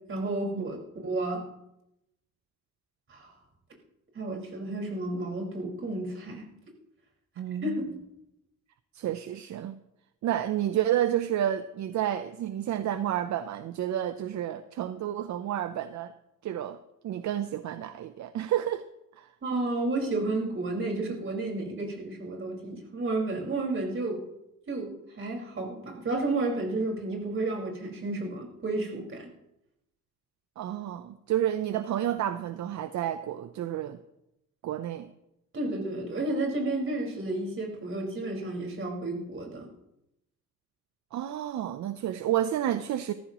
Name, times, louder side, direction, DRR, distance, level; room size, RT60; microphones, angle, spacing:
voice 1, 0.1-0.8 1.0-1.5 3.1-3.3 4.1-6.4 7.6-8.0 19.4-24.2 24.7-29.3 35.5-39.7, right 2 dB, 45° right, -1 dB, 5.2 m, -31 dB
voice 2, 7.4-7.8 8.9-9.8 10.2-16.1 16.4-16.8 17.0-18.8 19.2-19.3 30.6-34.0 34.6-35.1 41.1-43.1, right 11 dB, 70° right, 11 dB, 0.8 m, -30 dB
19.0 x 14.5 x 3.1 m, 0.86 s
cardioid pair, 90°, 30 cm